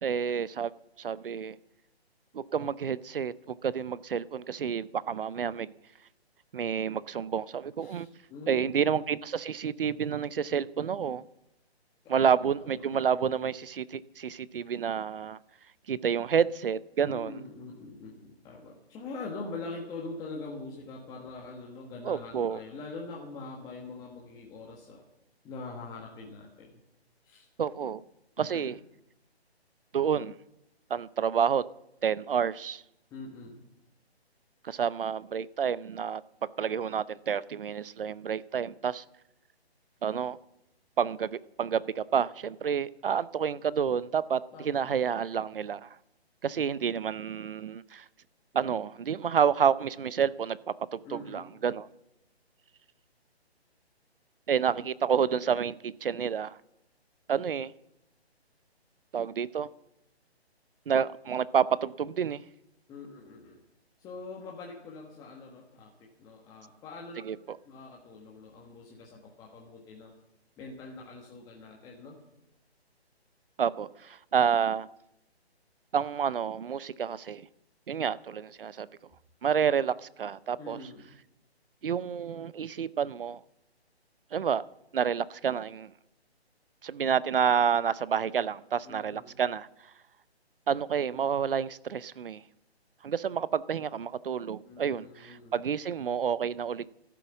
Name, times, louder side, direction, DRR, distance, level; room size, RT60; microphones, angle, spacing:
voice 1, 0.0-0.7 1.0-1.6 2.3-5.7 6.5-8.1 8.5-11.2 12.1-15.4 15.9-17.3 22.0-22.6 27.6-28.0 28.4-28.8 29.9-30.3 30.9-31.6 32.0-32.8 34.6-39.0 40.0-40.4 41.0-46.0 46.4-48.0 48.5-51.9 54.5-56.6 57.3-57.7 59.1-59.7 60.9-62.4 67.2-67.6 73.6-74.9 75.9-77.4 77.9-78.9 79.4-80.8 81.8-83.4 84.3-84.6 84.9-85.9 86.8-89.7 90.7-92.4 93.0-96.9, right 7 dB, 55° right, 0.7 m, -29 dB
voice 2, 7.8-8.8 12.0-12.2 12.6-12.9 17.0-25.0 25.4-26.8 27.2-27.5 28.4-28.7 33.1-33.6 44.5-44.9 51.0-51.4 62.9-63.6 64.0-67.2 67.6-70.1 70.6-72.2 80.6-81.1 88.8-89.4 94.6-95.6, left 3 dB, 10° left, 1.5 m, -43 dB
14.0 x 11.5 x 7.1 m
figure-of-eight pair, 145°, 33 cm